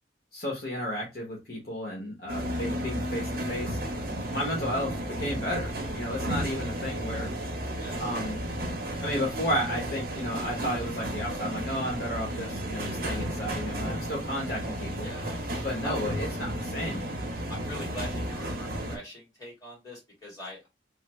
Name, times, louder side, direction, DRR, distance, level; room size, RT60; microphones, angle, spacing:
voice 1, 0.3-3.8 4.3-7.3 8.0-8.4 9.0-15.1 15.6-17.0, equal, 60° left, -2 dB, 0.9 m, -33 dB
sound 1, 2.3-19.0, right 1 dB, 55° right, 0.7 m, -33 dB
voice 2, 7.8-8.1 15.0-15.4 15.8-15.9 17.5-20.7, left 1 dB, 20° left, -5 dB, 2.1 m, -42 dB
3.2 x 2.0 x 3.0 m, 0.23 s
head